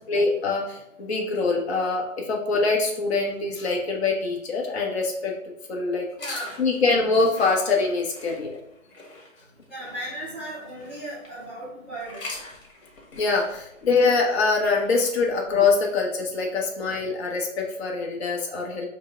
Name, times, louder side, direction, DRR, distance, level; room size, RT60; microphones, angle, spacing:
voice 1, 0.1-5.3 5.7-6.1 6.6-8.5 13.1-18.9, left 4 dB, 50° left, -1 dB, 1.0 m, -24 dB
sound 1, 6.1-11.4 12.0-16.0, left 2 dB, 70° left, 1.6 m, -43 dB
voice 2, 6.2-6.5 9.7-12.2, right 1 dB, 10° right, -12 dB, 0.4 m, -36 dB
5.0 x 2.1 x 4.4 m, 0.79 s
hypercardioid pair, 155°, 40 cm